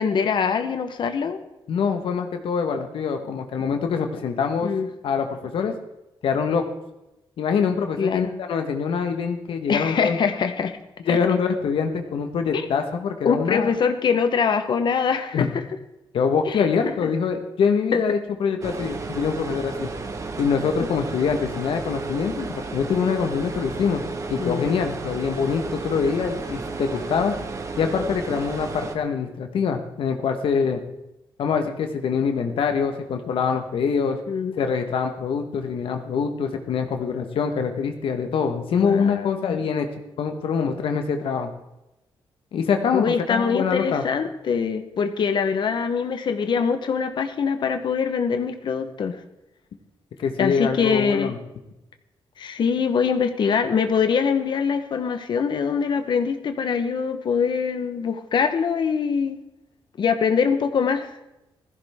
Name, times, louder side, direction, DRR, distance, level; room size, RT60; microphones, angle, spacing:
voice 1, 0.0-1.4 4.6-4.9 8.0-8.3 9.7-10.8 11.1-11.2 12.5-12.7 13.2-15.6 16.4-17.1 17.9-18.0 24.4-24.7 34.3-34.6 38.7-39.6 42.9-49.2 50.4-51.3 52.4-59.4 60.0-61.1, left 6 dB, 60° left, 8 dB, 1.1 m, -23 dB
voice 2, 1.7-4.7 5.0-5.7 6.2-6.6 7.4-10.2 11.1-13.7 15.3-15.5 16.1-19.9 20.4-24.0 24.3-27.3 27.8-30.8 31.4-34.2 34.5-39.9 40.2-41.5 42.5-44.0 50.2-51.4, left 6 dB, 80° left, 5 dB, 1.4 m, -24 dB
sound 1, 18.6-29.0, right 3 dB, 35° right, 1.3 m, -32 dB
16.5 x 14.5 x 3.7 m, 0.94 s
wide cardioid pair, 135°, 9 cm